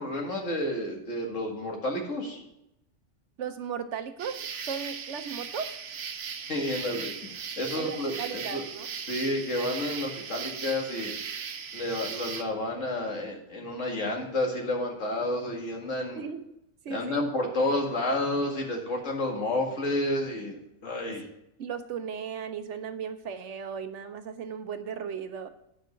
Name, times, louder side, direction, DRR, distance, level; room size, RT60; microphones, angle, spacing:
voice 1, 0.0-2.4 6.5-8.6 9.1-11.1 11.7-16.2 16.9-21.2, left 1 dB, 65° left, 1 dB, 2.2 m, -30 dB
voice 2, 3.4-4.4 4.6-5.7 7.8-8.9 16.1-16.4 16.8-17.2 21.1-21.2 21.6-25.5, right 7 dB, 65° right, 9 dB, 1.0 m, -36 dB
sound 1, 4.2-12.4, right 6 dB, 90° right, 1.3 m, -38 dB
10.0 x 5.5 x 5.8 m, 0.83 s
omnidirectional pair, 1.4 m